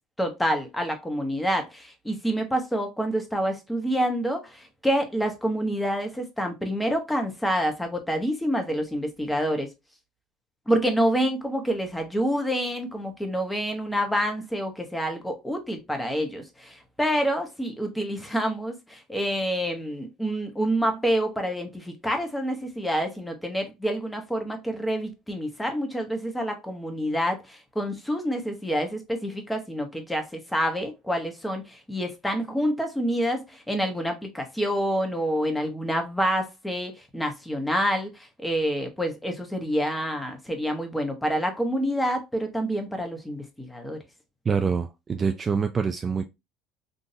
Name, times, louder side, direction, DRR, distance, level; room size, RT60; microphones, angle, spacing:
voice 1, 0.2-9.7 10.7-44.0, equal, 5° left, 1.0 m, -27 dB
voice 2, 44.5-46.2, right 5 dB, 30° right, 0.4 m, -25 dB
3.7 x 2.7 x 2.7 m
supercardioid pair, 85°, 0 cm